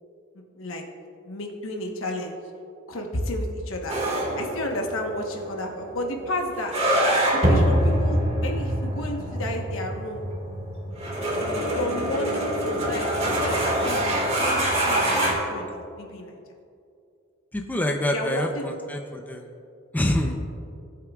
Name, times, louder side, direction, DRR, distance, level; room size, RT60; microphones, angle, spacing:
voice 1, 1.2-2.3 2.9-3.9 4.4-6.7 7.3-10.2 11.7-16.4 18.1-18.7, left 1 dB, 75° left, 2 dB, 1.1 m, -32 dB
sound 1, 3.9-15.3, right 1 dB, 30° right, 1.8 m, -25 dB
voice 2, 17.5-19.5 19.9-20.4, left 1 dB, 10° left, 3 dB, 0.5 m, -26 dB
17.5 x 7.8 x 2.4 m, 2.5 s
head